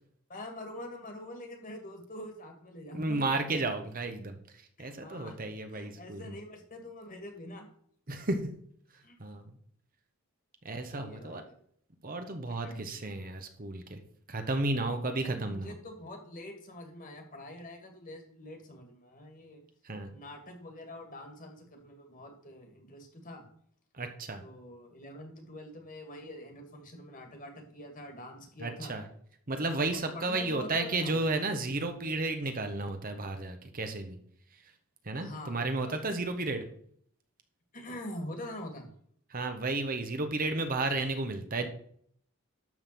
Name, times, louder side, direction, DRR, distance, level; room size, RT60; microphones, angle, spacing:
voice 1, 0.3-3.3 4.8-5.4 5.7-7.7 9.0-9.2 10.9-11.5 12.5-12.9 15.2-19.6 20.1-23.4 24.4-29.0 29.9-31.2 35.2-36.0 36.5-36.6 37.7-38.9, left 1 dB, 40° left, 4 dB, 2.2 m, -45 dB
voice 2, 2.9-6.4 8.1-8.4 9.2-9.5 10.6-11.4 12.0-14.0 14.3-15.7 19.8-20.1 23.9-24.4 28.6-29.1 29.5-34.2 34.5-34.6 35.0-36.6 39.3-41.7, right 2 dB, 40° right, 6 dB, 1.2 m, -33 dB
12.0 x 4.1 x 7.5 m, 0.63 s
head